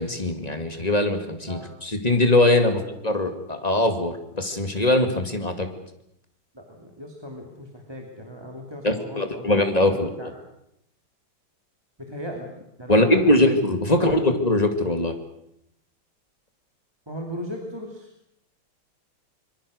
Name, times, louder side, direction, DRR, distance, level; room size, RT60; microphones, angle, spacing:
voice 1, 0.0-5.7 8.8-10.1 12.9-15.2, left 1 dB, 20° left, 6 dB, 2.2 m, -21 dB
voice 2, 6.5-9.5 9.9-10.3 12.0-12.5 12.8-13.4 13.8-14.2 17.1-18.1, equal, 15° right, 1 dB, 2.7 m, -37 dB
25.0 x 22.5 x 6.5 m, 0.78 s
omnidirectional pair, 2.1 m